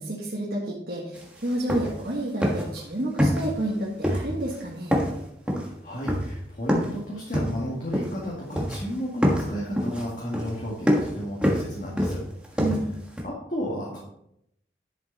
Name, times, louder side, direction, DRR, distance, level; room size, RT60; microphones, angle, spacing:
voice 1, 0.0-5.0 12.6-12.8, right 1 dB, 60° right, -4 dB, 1.5 m, -30 dB
sound 1, 1.1-1.2 1.5-2.1 2.4-2.8 3.2-3.7 4.0-4.6 4.9-7.0 7.3-8.3 8.6-8.9 9.2-13.2, equal, 5° right, 1.4 m, -26 dB
voice 2, 5.5-12.2 13.2-14.0, equal, 45° left, -5 dB, 2.2 m, -33 dB
10.5 x 7.1 x 4.1 m, 0.77 s
head